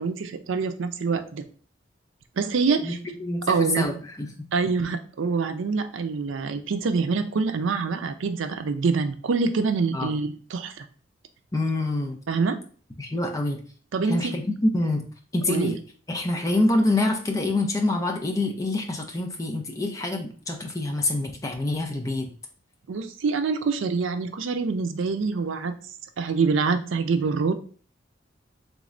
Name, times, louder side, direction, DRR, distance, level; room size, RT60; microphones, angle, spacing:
voice 1, 0.0-1.4 2.4-3.0 3.5-3.9 4.5-10.9 12.3-12.6 13.9-14.4 15.5-15.7 22.9-25.7 26.2-27.5, right 4 dB, 90° right, 9 dB, 0.4 m, -25 dB
voice 2, 2.8-4.3 9.9-10.1 11.5-12.2 13.0-13.6 14.0-15.1 15.3-15.8 16.1-22.3, left 2 dB, 15° left, 3 dB, 0.5 m, -26 dB
3.5 x 3.1 x 2.5 m, 0.41 s
head